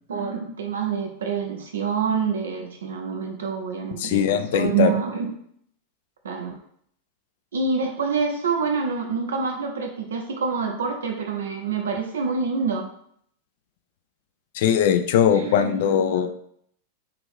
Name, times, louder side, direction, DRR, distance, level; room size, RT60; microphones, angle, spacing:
voice 1, 0.1-5.3 6.2-6.6 7.5-12.9 15.3-16.3, right 5 dB, 65° right, 2 dB, 0.4 m, -27 dB
voice 2, 4.0-4.9 14.5-16.3, left 9 dB, 50° left, 9 dB, 0.3 m, -20 dB
3.3 x 2.5 x 3.6 m, 0.68 s
figure-of-eight pair, 90°, 0 cm